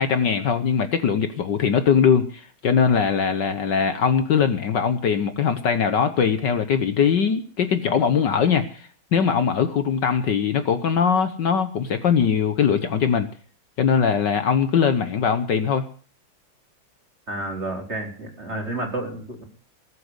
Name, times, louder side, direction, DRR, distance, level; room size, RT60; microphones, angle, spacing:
voice 1, 0.0-13.3 13.8-15.8, left 6 dB, 60° left, 10 dB, 1.6 m, -21 dB
voice 2, 17.3-19.4, right 2 dB, 30° right, 2 dB, 4.3 m, -30 dB
20.0 x 8.0 x 8.0 m, 0.41 s
omnidirectional pair, 2.3 m